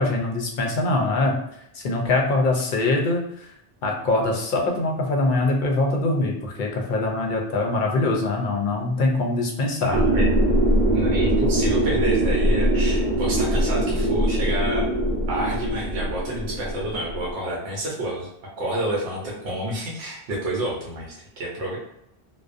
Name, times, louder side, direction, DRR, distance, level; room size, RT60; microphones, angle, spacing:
voice 1, 0.0-1.4 1.7-3.5 3.8-10.0, left 2 dB, 60° left, 0 dB, 0.6 m, -23 dB
voice 2, 9.8-10.3 10.9-14.8 15.3-18.3 18.6-21.8, right 1 dB, 80° right, -4 dB, 0.9 m, -29 dB
sound 1, 9.9-17.3, right 1 dB, 45° right, 0.7 m, -22 dB
2.5 x 2.0 x 2.5 m, 0.76 s
omnidirectional pair, 1.1 m